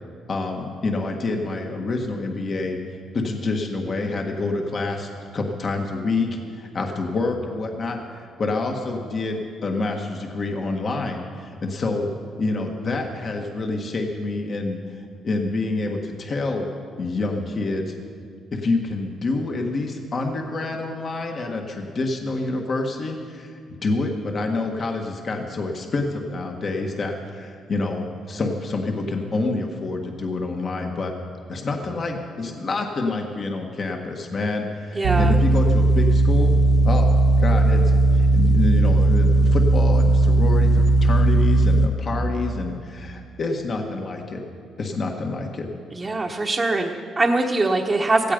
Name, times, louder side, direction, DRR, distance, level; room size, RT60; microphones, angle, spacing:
voice 1, 0.3-2.8 3.1-12.1 12.4-16.7 17.0-17.9 18.5-31.1 31.5-44.4 44.8-45.7, left 3 dB, 45° left, 2 dB, 1.6 m, -27 dB
voice 2, 34.9-35.3 45.9-48.3, right 2 dB, 25° right, -2 dB, 1.1 m, -22 dB
sound 1, 35.0-41.9, right 2 dB, 80° right, 1.1 m, -17 dB
17.0 x 15.5 x 5.2 m, 2.3 s
cardioid pair, 100°, 0 cm